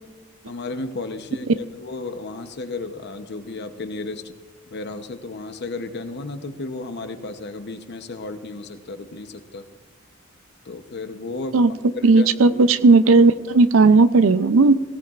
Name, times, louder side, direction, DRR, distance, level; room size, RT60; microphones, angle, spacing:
voice 1, 0.5-4.3 4.7-9.7 10.6-11.6 11.9-12.6, left 3 dB, 55° left, 8 dB, 0.8 m, -33 dB
voice 2, 12.0-14.8, right 3 dB, 70° right, 14 dB, 0.5 m, -15 dB
18.5 x 16.5 x 2.5 m, 1.4 s
head